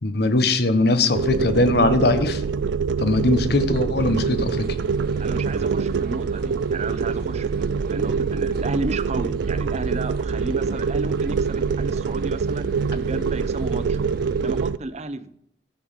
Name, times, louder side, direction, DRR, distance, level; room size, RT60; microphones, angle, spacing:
voice 1, 0.0-2.4 3.0-4.7, left 2 dB, 60° left, 10 dB, 1.1 m, -20 dB
sound 1, 1.1-14.8, right 5 dB, 80° right, 0.4 m, -25 dB
sound 2, 4.0-14.7, right 1 dB, 60° right, 1.2 m, -38 dB
voice 2, 5.2-14.0 14.4-15.3, right 2 dB, 40° right, 13 dB, 0.8 m, -33 dB
14.5 x 5.3 x 7.4 m, 0.72 s
head